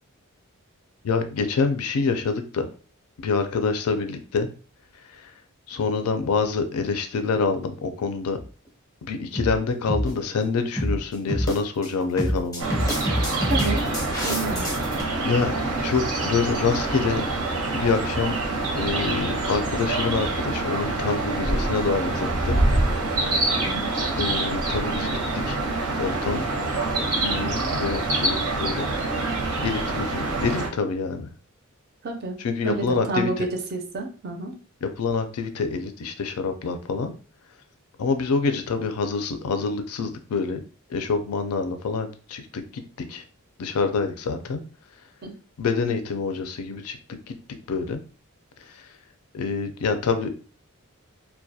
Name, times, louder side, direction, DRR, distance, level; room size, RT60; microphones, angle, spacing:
voice 1, 1.0-2.7 3.2-4.5 5.1-5.3 5.7-8.4 9.0-12.7 14.2-14.3 15.2-17.2 17.7-18.4 18.7-22.6 24.2-25.6 26.0-26.4 27.2-28.9 29.6-31.3 32.4-33.5 34.8-37.1 38.0-40.6 40.9-43.2 43.6-44.6 45.6-47.0 47.3-47.4 47.7-48.0 48.6-48.9 49.3-50.3, left 4 dB, 80° left, 7 dB, 0.4 m, -26 dB
sound 1, 8.4-8.7 9.3-9.6 9.9-10.1 10.8-11.0 11.3-11.9 12.2-15.0, equal, 15° left, 0.5 m, -26 dB
sound 2, 12.6-30.7, right 2 dB, 85° right, 0.7 m, -26 dB
voice 2, 13.5-13.9 14.2-14.7 23.6-23.9 32.0-32.4 32.6-34.5 45.2-45.3, right 2 dB, 45° right, 3 dB, 0.4 m, -29 dB
2.2 x 2.1 x 2.6 m, 0.38 s
head